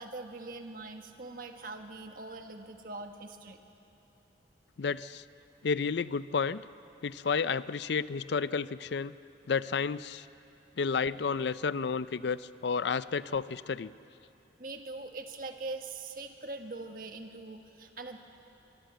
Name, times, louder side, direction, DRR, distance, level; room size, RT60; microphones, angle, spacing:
voice 1, 0.0-3.6 14.6-18.2, right 3 dB, 50° right, 5 dB, 1.5 m, -42 dB
voice 2, 4.8-5.2 5.6-6.6 7.0-9.2 9.5-10.3 10.8-13.9, left 5 dB, 65° left, 16 dB, 0.5 m, -31 dB
24.0 x 23.0 x 7.9 m, 2.8 s
head